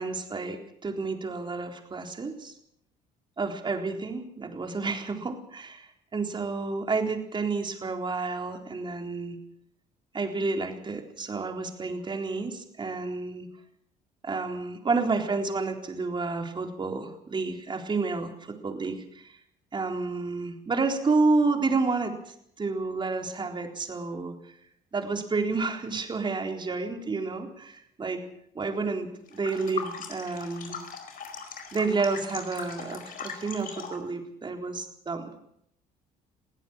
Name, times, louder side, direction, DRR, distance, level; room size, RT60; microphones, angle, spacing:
voice 1, 0.0-2.5 3.4-9.4 10.1-13.5 14.2-19.4 19.7-24.3 24.9-28.2 28.5-30.8 31.7-35.3, right 3 dB, 25° right, 4 dB, 3.9 m, -30 dB
sound 1, 29.3-34.1, left 6 dB, 55° left, 4.7 m, -39 dB
22.0 x 16.0 x 7.4 m, 0.71 s
cardioid pair, 110°, 17 cm